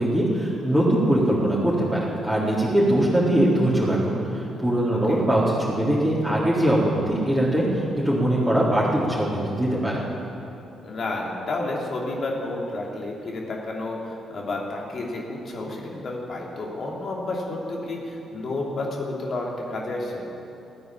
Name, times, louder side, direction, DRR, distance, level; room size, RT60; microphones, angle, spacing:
voice 1, 0.0-10.0, right 1 dB, 5° right, -8 dB, 3.9 m, -22 dB
voice 2, 4.9-5.2 10.8-20.2, left 2 dB, 45° left, -1 dB, 3.1 m, -31 dB
16.5 x 9.4 x 9.0 m, 2.8 s
figure-of-eight pair, 40°, 0 cm